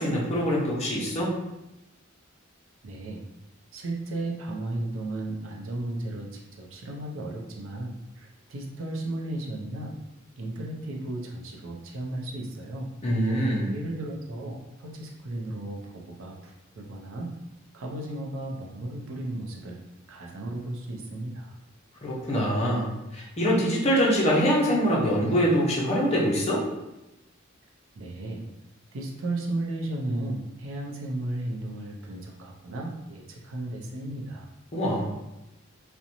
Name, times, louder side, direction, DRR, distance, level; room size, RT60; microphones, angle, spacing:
voice 1, 0.0-1.3 13.0-13.7 22.0-22.9 23.1-26.6 34.7-35.1, equal, 30° left, -4 dB, 0.6 m, -24 dB
voice 2, 2.8-3.2 3.7-10.0 10.4-12.9 13.7-17.3 17.7-19.8 20.1-21.6 28.0-28.5 28.9-34.5, right 1 dB, 70° right, 0 dB, 0.5 m, -34 dB
2.5 x 2.1 x 2.8 m, 0.96 s
head